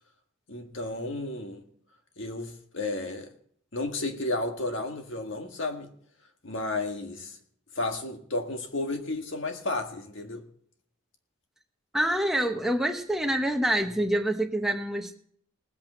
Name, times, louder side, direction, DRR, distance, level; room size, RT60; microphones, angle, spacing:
voice 1, 0.5-1.6 2.2-3.3 3.7-5.9 6.4-7.4 7.8-10.4, left 2 dB, 60° left, 4 dB, 1.7 m, -32 dB
voice 2, 11.9-15.2, right 1 dB, ahead, 4 dB, 1.0 m, -26 dB
19.5 x 8.4 x 4.4 m, 0.62 s
head